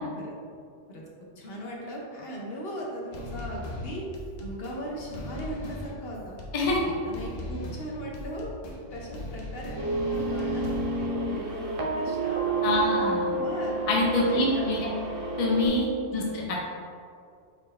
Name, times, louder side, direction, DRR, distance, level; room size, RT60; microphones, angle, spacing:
voice 1, 1.4-4.1 4.4-6.4 6.8-13.8 14.2-15.2 16.0-16.3, equal, 55° left, -2 dB, 0.9 m, -38 dB
sound 1, 3.1-11.1, left 1 dB, 90° left, 1.1 m, -39 dB
sound 2, 9.8-15.7, right 3 dB, 50° right, 0.4 m, -30 dB
voice 2, 12.6-13.3 13.9-14.9 15.4-15.9 16.1-16.6, left 2 dB, 40° left, -3 dB, 0.5 m, -25 dB
4.1 x 3.8 x 3.2 m, 2.3 s
omnidirectional pair, 1.3 m